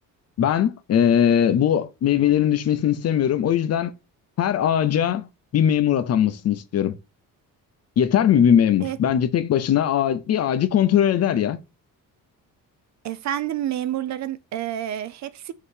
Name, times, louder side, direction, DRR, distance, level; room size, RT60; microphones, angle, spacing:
voice 1, 0.4-3.9 4.4-5.3 5.5-6.9 8.0-11.6, left 9 dB, 45° left, 0.7 m, -20 dB
voice 2, 13.0-15.5, right 11 dB, 55° right, 0.5 m, -29 dB
6.6 x 3.0 x 5.1 m
cardioid pair, 175°, 34 cm